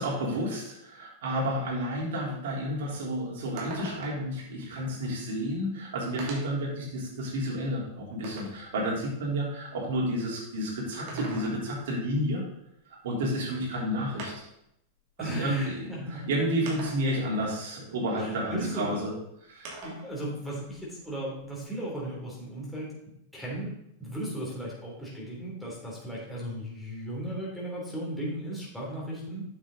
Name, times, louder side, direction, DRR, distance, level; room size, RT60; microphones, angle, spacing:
voice 1, 0.0-12.4 13.0-14.3 15.2-19.1 19.4-19.7, equal, 75° right, -3 dB, 3.9 m, -31 dB
sound 1, 3.6-4.3 5.4-5.5 6.2-6.7 7.2-8.6 10.9-11.8 13.3-13.4 14.2-14.6 15.6-15.7 16.7-17.3 19.6-20.1 20.5-21.6, right 2 dB, 50° right, 2.8 m, -43 dB
voice 2, 11.1-11.5 15.2-16.3 18.2-19.1 19.8-22.9 23.3-23.7 24.0-29.4, right 1 dB, ahead, -5 dB, 3.3 m, -36 dB
8.6 x 7.3 x 4.0 m, 0.76 s
supercardioid pair, 145°, 0 cm